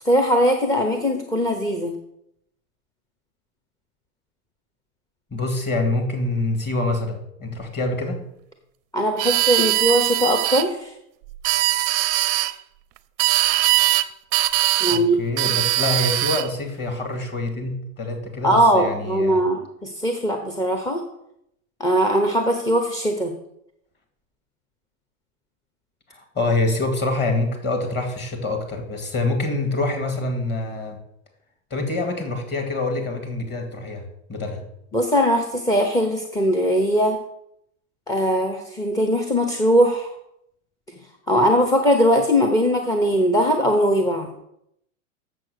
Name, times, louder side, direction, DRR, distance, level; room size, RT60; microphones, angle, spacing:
voice 1, 0.1-2.0 8.9-10.9 14.8-15.2 18.4-21.0 21.8-23.3 34.9-37.2 38.1-40.1 41.3-44.3, equal, 10° left, 4 dB, 0.6 m, -20 dB
voice 2, 5.3-8.2 14.9-19.4 26.1-31.0 31.7-34.0 34.3-34.6, left 2 dB, 25° left, 4 dB, 2.2 m, -26 dB
sound 1, 9.2-10.7 11.3-12.5 13.2-14.1 14.3-15.0 15.4-16.5, right 17 dB, 40° right, 0.5 m, -21 dB
7.6 x 6.9 x 6.5 m, 0.77 s
supercardioid pair, 135°, 42 cm